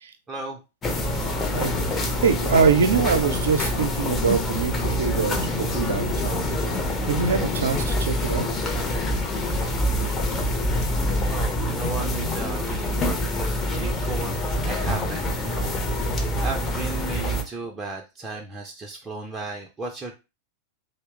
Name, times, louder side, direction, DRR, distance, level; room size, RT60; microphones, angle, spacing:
voice 1, 0.3-0.6 11.3-14.4 14.6-15.8 16.4-20.1, right 3 dB, 20° right, 0 dB, 0.5 m, -35 dB
sound 1, 0.8-17.4, left 1 dB, 20° left, 0.7 m, -26 dB
voice 2, 2.2-6.4 7.1-8.5, right 6 dB, 65° right, 8 dB, 0.5 m, -23 dB
2.8 x 2.0 x 3.5 m, 0.27 s
figure-of-eight pair, 90°, 0 cm